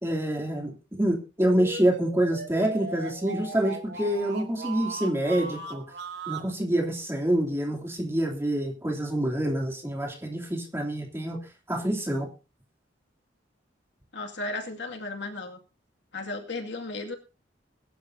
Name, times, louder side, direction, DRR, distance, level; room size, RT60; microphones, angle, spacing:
voice 1, 0.0-5.8 6.3-11.4 11.7-12.3, right 1 dB, 15° right, 1 dB, 3.0 m, -27 dB
sound 1, 1.5-6.5, right 3 dB, 60° right, 2.3 m, -38 dB
voice 2, 14.1-15.6 16.1-17.1, left 2 dB, 70° left, 3 dB, 2.2 m, -35 dB
21.5 x 11.5 x 2.8 m, 0.31 s
head